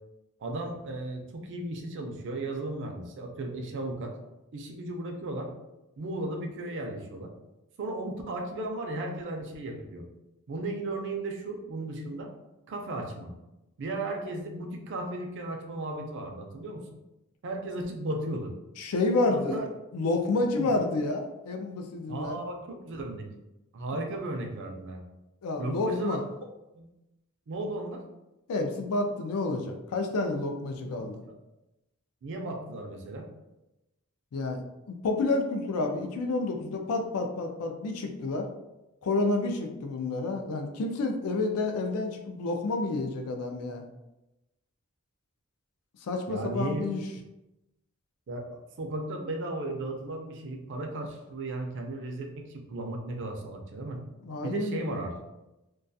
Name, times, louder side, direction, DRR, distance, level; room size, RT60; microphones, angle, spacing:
voice 1, 0.4-4.1 4.5-5.5 6.0-7.3 7.8-10.1 10.5-12.3 12.7-13.3 13.8-16.9 17.4-18.5 19.3-19.7 20.6-20.7 22.1-23.3 23.7-25.0 25.6-26.2 26.7-26.8 27.5-28.0 30.8-31.3 32.2-33.3 46.3-46.9 48.3-54.0 54.4-55.1, right 2 dB, 55° right, 3 dB, 0.4 m, -35 dB
voice 2, 18.8-19.6 19.9-22.4 23.9-24.0 25.4-26.2 28.5-31.2 34.3-38.5 39.0-43.8 46.0-47.0 54.2-54.9, left 2 dB, 85° left, 4 dB, 0.4 m, -29 dB
2.3 x 2.2 x 2.6 m, 0.97 s
head